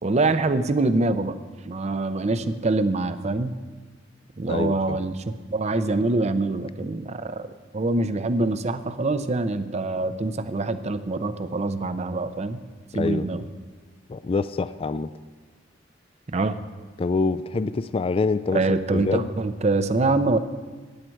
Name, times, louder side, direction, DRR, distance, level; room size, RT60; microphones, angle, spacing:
voice 1, 0.0-1.3 1.7-3.6 4.4-7.5 7.7-12.6 12.9-13.4 16.3-16.6 18.5-20.4, right 2 dB, 35° right, 11 dB, 0.6 m, -24 dB
voice 2, 4.5-5.0 12.9-13.5 14.1-15.1 17.0-19.3, left 4 dB, 30° left, 14 dB, 0.3 m, -26 dB
15.5 x 10.0 x 4.6 m, 1.4 s
head